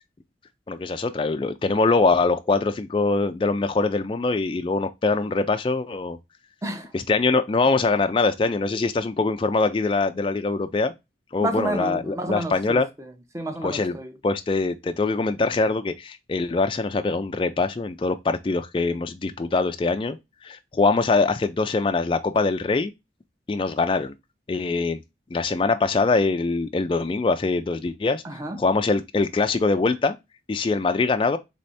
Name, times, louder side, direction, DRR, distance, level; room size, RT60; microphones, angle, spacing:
voice 1, 0.7-6.2 6.9-10.9 11.3-12.9 13.6-14.0 14.2-20.2 20.4-22.9 23.5-24.1 24.5-25.0 25.3-30.2 30.5-31.4, left 3 dB, 30° left, 0.3 m, -23 dB
voice 2, 6.6-6.9 8.7-8.9 11.4-14.2 28.2-28.6, right 1 dB, 15° right, 0.7 m, -31 dB
3.5 x 3.3 x 4.1 m
head